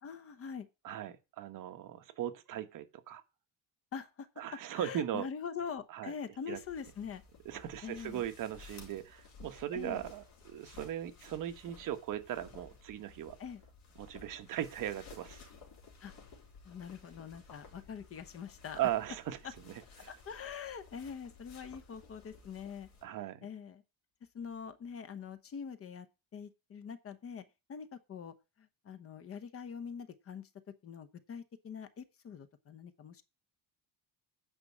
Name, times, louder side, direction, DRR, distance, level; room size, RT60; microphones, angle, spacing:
voice 1, 0.0-0.7 3.9-4.3 4.7-7.2 7.8-8.2 9.7-10.0 13.4-13.6 16.0-16.1 16.6-18.8 20.1-22.9 23.4-23.8 24.3-26.1 26.3-27.4 27.7-30.5 30.8-33.2, left 6 dB, 35° left, 0.9 m, -44 dB
voice 2, 0.8-3.2 4.4-5.3 5.9-6.1 6.5-6.6 7.4-13.4 14.0-15.5 18.8-19.4 19.7-20.1 23.0-23.5, right 11 dB, 55° right, 1.2 m, -38 dB
sound 1, 6.5-23.0, left 4 dB, 60° left, 3.6 m, -56 dB
9.1 x 5.4 x 7.1 m
cardioid pair, 170°, 39 cm